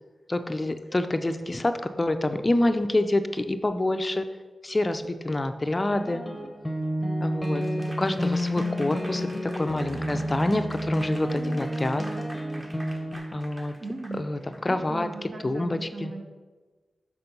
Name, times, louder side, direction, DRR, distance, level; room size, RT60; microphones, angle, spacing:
voice 1, 0.3-4.2 4.6-6.2 7.2-7.6 8.0-12.0 13.3-13.7 14.2-14.4 14.6-15.1 15.4-16.2, left 2 dB, 25° left, 9 dB, 0.4 m, -27 dB
sound 1, 5.9-13.2, equal, 5° left, 0.9 m, -30 dB
Applause / Crowd, 7.4-14.6, right 1 dB, 25° right, 1.1 m, -46 dB
voice 2, 13.8-14.3 14.7-16.2, right 3 dB, 60° right, 3 dB, 1.0 m, -37 dB
6.0 x 5.8 x 5.2 m, 1.3 s
wide cardioid pair, 80°, 0 cm